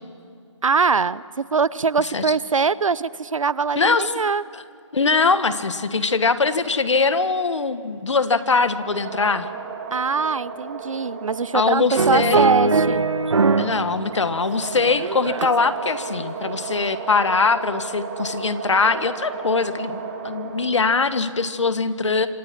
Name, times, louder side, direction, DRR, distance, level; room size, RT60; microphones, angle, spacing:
voice 1, 0.6-4.4 9.9-13.0, right 5 dB, 85° right, 19 dB, 0.8 m, -22 dB
voice 2, 3.7-4.1 4.5-4.6 4.9-9.5 11.5-12.5 13.6-22.3, left 4 dB, 65° left, 12 dB, 1.5 m, -22 dB
sound 1, 8.6-21.1, right 5 dB, 25° right, 2.0 m, -34 dB
sound 2, 12.0-13.8 14.1-15.7 16.2-16.4, right 4 dB, 65° right, 1.3 m, -21 dB
27.0 x 26.5 x 6.0 m, 2.4 s
hypercardioid pair, 170°, 16 cm